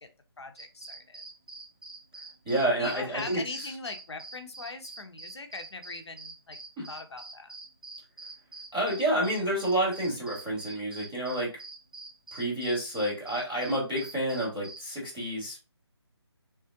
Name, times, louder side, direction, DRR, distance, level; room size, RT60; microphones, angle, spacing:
voice 1, 0.4-1.2 2.8-6.6 6.9-7.5, left 3 dB, 70° left, 6 dB, 0.7 m, -41 dB
sound 1, 0.6-14.9, right 3 dB, 55° right, 0.6 m, -45 dB
voice 2, 2.4-3.7 6.8-6.9 8.7-11.5 12.3-15.6, right 1 dB, ahead, -27 dB, 0.4 m, -29 dB
3.6 x 2.3 x 2.7 m, 0.30 s
figure-of-eight pair, 175°, 14 cm